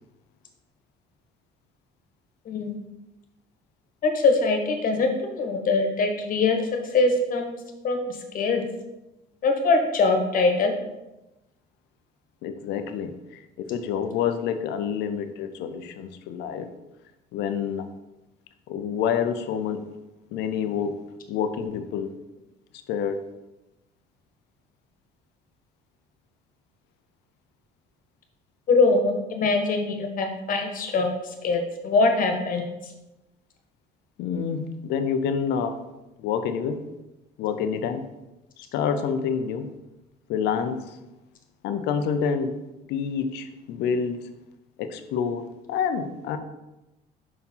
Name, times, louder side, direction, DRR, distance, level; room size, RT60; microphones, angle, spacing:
voice 1, 2.4-2.8 4.0-7.5 7.8-8.6 9.4-10.7 28.7-31.1 31.4-32.6, left 3 dB, 55° left, 4 dB, 1.4 m, -23 dB
voice 2, 12.4-16.7 17.3-17.9 18.7-19.9 20.3-21.0 21.3-22.1 22.9-23.2 34.2-35.8 36.2-36.8 37.4-38.1 38.6-39.7 40.3-41.0 41.6-44.2 44.8-46.4, left 7 dB, 85° left, 9 dB, 0.7 m, -28 dB
5.4 x 4.6 x 5.5 m, 0.99 s
cardioid pair, 110°, 17 cm